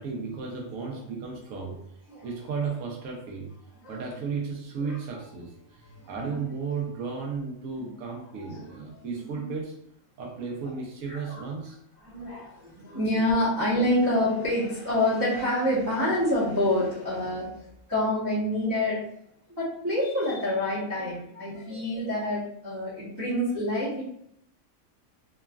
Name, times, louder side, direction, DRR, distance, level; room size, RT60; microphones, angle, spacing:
voice 1, 0.0-1.8 2.2-3.5 3.9-9.7 10.2-11.8, right 5 dB, 70° right, -1 dB, 1.0 m, -34 dB
voice 2, 6.0-6.4 9.0-9.4 11.1-11.4 12.0-17.5 17.9-19.0 19.6-24.0, left 1 dB, 20° right, -10 dB, 0.7 m, -27 dB
3.0 x 2.3 x 2.2 m, 0.72 s
omnidirectional pair, 1.5 m